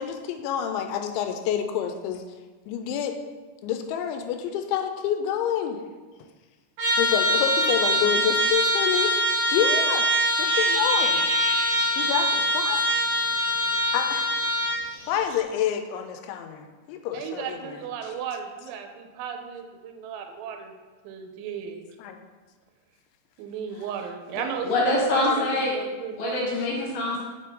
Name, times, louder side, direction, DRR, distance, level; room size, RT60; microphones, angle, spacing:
voice 1, 0.0-2.2 2.7-3.2 3.6-5.8 7.0-10.1 10.4-11.3 12.0-12.2 12.5-12.8 13.9-14.3 15.1-18.2 22.0-22.2, left 9 dB, 85° left, 6 dB, 2.9 m, -28 dB
Trumpet, 6.8-14.8, equal, 60° right, 1.7 m, -23 dB
sound 1, 10.3-15.4, right 2 dB, 35° right, 1.4 m, -40 dB
voice 2, 17.1-20.7 21.0-22.0 23.4-26.5, right 7 dB, 85° right, 5 dB, 3.1 m, -35 dB
voice 3, 24.4-25.8 26.2-27.2, left 2 dB, 70° left, -2 dB, 2.6 m, -25 dB
6.7 x 6.7 x 3.7 m, 1.3 s
omnidirectional pair, 5.3 m